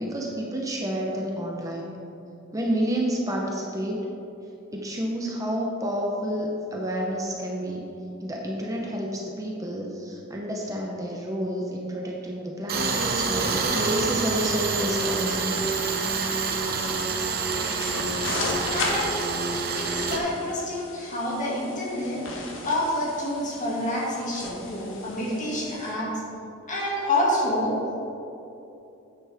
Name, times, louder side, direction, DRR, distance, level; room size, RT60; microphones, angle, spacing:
voice 1, 0.0-1.9 2.5-4.0 4.7-7.8 8.2-15.8, right 1 dB, 15° right, -2 dB, 0.8 m, -30 dB
Tools, 12.7-20.2, right 4 dB, 50° right, 0.9 m, -27 dB
sound 1, 17.5-25.9, left 2 dB, 75° left, 1.5 m, -36 dB
voice 2, 18.7-19.2 19.7-22.2 22.6-26.1 26.7-27.8, left 1 dB, 40° left, -5 dB, 2.2 m, -28 dB
9.4 x 9.4 x 3.5 m, 2.9 s
head